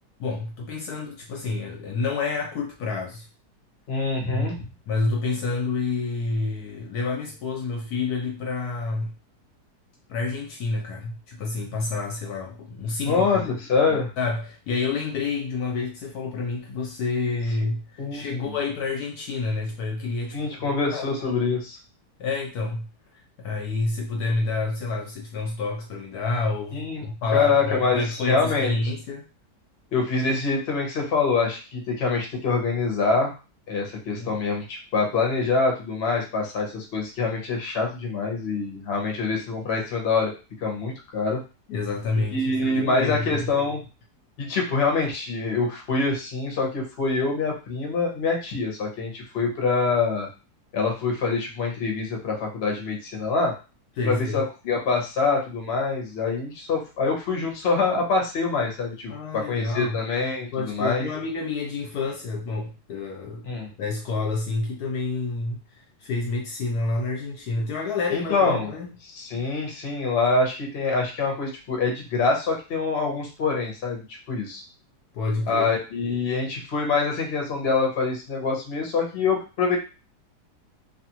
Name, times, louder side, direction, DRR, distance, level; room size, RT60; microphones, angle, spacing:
voice 1, 0.2-3.3 4.3-4.6 4.9-9.1 10.1-13.5 14.2-20.6 20.9-21.6 22.2-22.9 23.4-29.3 34.1-34.4 41.7-43.5 54.0-54.4 59.1-60.0 60.5-63.4 63.8-65.6 66.0-68.9 75.1-75.7, left 3 dB, 70° left, 1 dB, 1.1 m, -29 dB
voice 2, 3.9-4.7 13.0-14.1 18.0-18.5 20.3-21.8 26.7-27.0 27.3-28.7 29.9-33.3 33.7-40.3 40.6-41.4 42.2-43.8 44.4-50.3 50.7-53.5 54.0-61.1 63.4-63.7 68.1-68.7 69.2-74.6 75.5-79.8, left 4 dB, 50° left, 1 dB, 0.9 m, -25 dB
2.7 x 2.4 x 2.8 m, 0.32 s
omnidirectional pair, 1.8 m